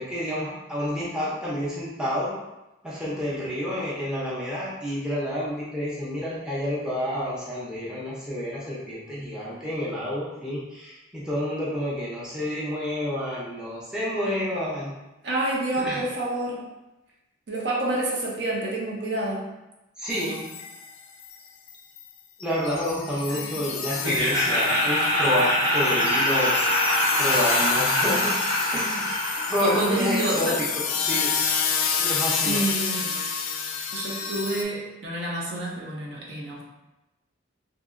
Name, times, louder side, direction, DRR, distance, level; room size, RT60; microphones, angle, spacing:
voice 1, 0.0-2.3 2.8-14.9 15.8-16.0 20.0-20.4 22.4-26.5 27.2-28.3 28.7-29.2 29.5-31.3 32.0-32.6, equal, 5° right, -8 dB, 0.5 m, -29 dB
voice 2, 15.2-16.7 17.5-19.4 23.3-23.7 28.0-28.2 29.6-30.6 32.4-33.1 33.9-36.6, right 2 dB, 60° right, -4 dB, 0.6 m, -28 dB
sound 1, 20.1-21.0 21.2-21.4 21.7-22.1 22.4-34.6, left 6 dB, 85° left, 0.4 m, -29 dB
Laughter, 24.0-31.0, left 1 dB, 75° right, 1.1 m, -24 dB
2.9 x 2.7 x 2.5 m, 0.98 s
head